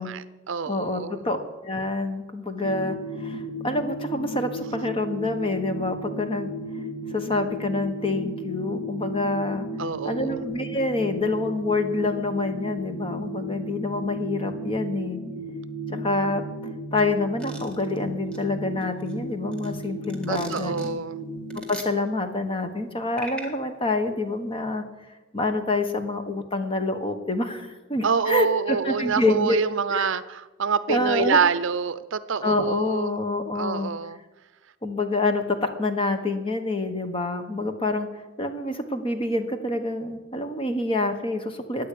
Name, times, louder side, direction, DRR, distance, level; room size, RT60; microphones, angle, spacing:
voice 1, 0.0-1.3 9.8-10.4 20.3-21.2 28.0-33.2 33.5-34.2, right 5 dB, 60° right, 15 dB, 0.6 m, -26 dB
voice 2, 0.7-1.4 1.6-6.5 7.1-9.7 10.0-15.2 15.9-16.4 16.9-20.7 21.7-24.8 25.3-29.6 29.9-30.1 30.9-31.4 32.4-33.9 34.8-38.1 38.4-41.9, left 2 dB, 25° left, 7 dB, 1.2 m, -27 dB
sound 1, 2.6-21.6, equal, 65° left, 2.9 m, -34 dB
sound 2, 17.4-18.0 18.3-18.4 18.8-20.9 21.5-21.9 23.2-23.5, right 1 dB, 5° left, 1.8 m, -39 dB
13.0 x 9.5 x 8.6 m, 1.1 s
head